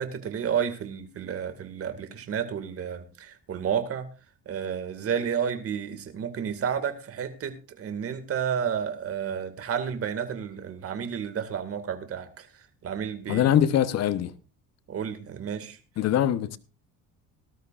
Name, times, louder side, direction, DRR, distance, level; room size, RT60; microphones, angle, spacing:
voice 1, 0.0-4.1 4.5-12.5 12.8-13.5 14.9-15.8, right 7 dB, 45° right, 2.1 m, -31 dB
voice 2, 13.3-14.3 16.0-16.6, left 10 dB, 50° left, 1.0 m, -23 dB
19.0 x 12.5 x 2.5 m
cardioid pair, 120°, 32 cm